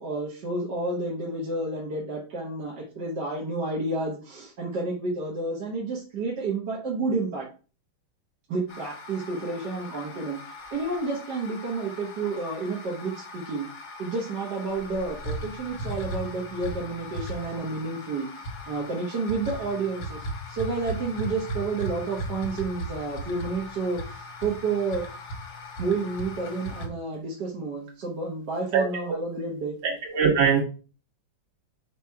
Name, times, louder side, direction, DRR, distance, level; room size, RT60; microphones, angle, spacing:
voice 1, 0.0-7.5 8.5-13.7 14.0-18.3 18.7-25.0 25.8-29.8, right 3 dB, 60° right, -3 dB, 1.8 m, -30 dB
sound 1, 8.7-26.9, equal, 55° left, 1.6 m, -38 dB
voice 2, 29.8-30.6, right 7 dB, 90° right, 0 dB, 2.5 m, -21 dB
4.9 x 4.8 x 4.6 m, 0.36 s
omnidirectional pair, 2.1 m